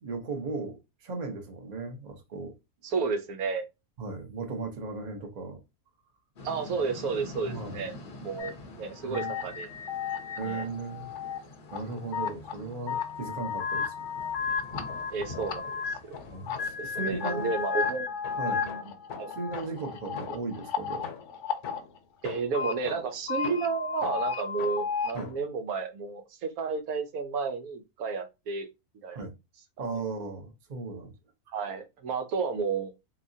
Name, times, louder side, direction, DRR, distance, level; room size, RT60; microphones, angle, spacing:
voice 1, 0.0-2.6 4.0-5.6 7.4-7.8 9.0-9.4 10.4-11.1 11.7-14.1 16.2-17.5 18.4-18.6 19.4-21.1 25.1-25.3 29.1-29.3 29.8-31.1, right 3 dB, 35° right, 0.8 m, -36 dB
voice 2, 2.8-3.6 6.4-7.9 8.2-9.7 10.4-10.7 15.1-16.2 16.8-18.1 18.5-18.8 19.1-19.3 22.2-28.7 29.0-29.3 31.5-32.9, right 5 dB, 75° right, 1.1 m, -32 dB
sound 1, 6.4-17.7, left 1 dB, 50° left, 0.8 m, -47 dB
sound 2, 8.4-8.5 9.1-11.4 11.7-12.5 12.9-16.2 16.5-21.8 22.4-22.7 23.1-25.1, left 6 dB, 85° left, 0.4 m, -33 dB
sound 3, 14.7-15.8 16.1-20.6 21.0-25.6, left 6 dB, 65° left, 1.2 m, -46 dB
3.5 x 2.9 x 2.7 m
omnidirectional pair, 1.6 m